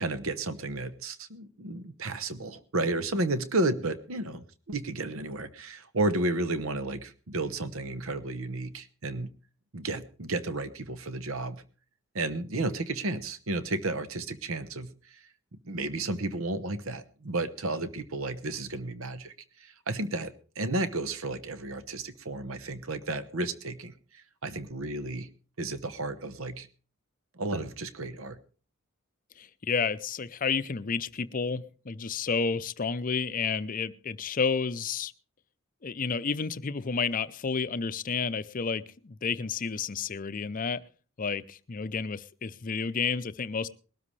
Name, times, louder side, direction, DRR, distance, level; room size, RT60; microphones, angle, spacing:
voice 1, 0.0-9.3 9.7-11.6 12.1-15.2 15.5-25.3 25.6-26.7 27.3-28.4, right 2 dB, 75° right, 12 dB, 1.0 m, -32 dB
voice 2, 29.4-35.1 35.8-40.8 41.2-43.7, left 5 dB, 40° left, 14 dB, 0.6 m, -31 dB
21.0 x 12.5 x 3.3 m, 0.38 s
head